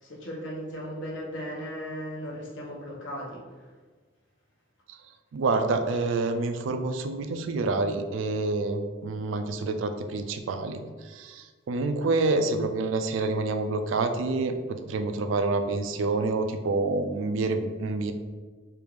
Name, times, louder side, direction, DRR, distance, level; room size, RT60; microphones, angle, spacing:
voice 1, 0.0-3.4, equal, 70° left, -4 dB, 1.0 m, -36 dB
voice 2, 5.3-10.8 11.1-18.1, right 3 dB, 80° right, 7 dB, 0.3 m, -27 dB
3.4 x 2.5 x 3.1 m, 1.4 s
head